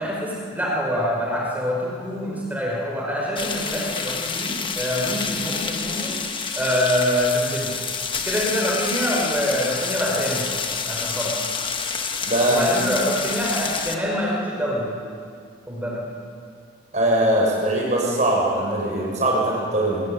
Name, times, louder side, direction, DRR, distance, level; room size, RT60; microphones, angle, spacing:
voice 1, 0.0-6.2 6.6-7.7 8.2-10.6 10.9-11.3 12.5-15.0 15.7-16.0, equal, 10° right, -3 dB, 5.0 m, -25 dB
Pan Frying Chicken, 3.4-14.0, left 5 dB, 25° left, 1.3 m, -28 dB
voice 2, 12.2-12.8 16.9-20.0, right 1 dB, 35° right, -3 dB, 7.3 m, -21 dB
21.0 x 20.0 x 10.0 m, 2.3 s
head